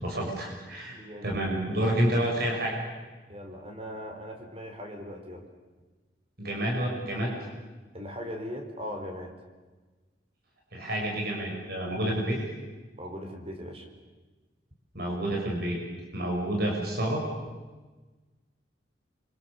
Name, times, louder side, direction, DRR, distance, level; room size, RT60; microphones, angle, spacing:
voice 1, 0.0-2.8 6.4-7.3 10.7-12.4 14.9-15.8 16.1-17.2, right 1 dB, 60° right, 0 dB, 6.5 m, -29 dB
voice 2, 0.8-1.4 1.7-1.8 3.3-5.5 7.9-9.3 13.0-13.9, equal, 35° right, 4 dB, 4.2 m, -39 dB
30.0 x 25.5 x 7.1 m, 1.3 s
head